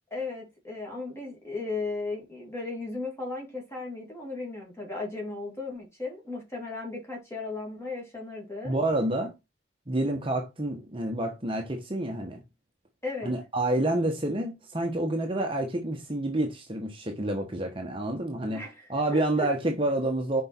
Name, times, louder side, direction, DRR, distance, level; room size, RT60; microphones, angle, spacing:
voice 1, 0.1-8.8 13.0-13.3 18.5-19.5, left 3 dB, 15° left, 2.7 m, -36 dB
voice 2, 8.6-9.3 9.9-12.4 13.2-18.6 18.9-20.4, right 1 dB, 30° right, 1.0 m, -28 dB
6.0 x 4.7 x 4.3 m
head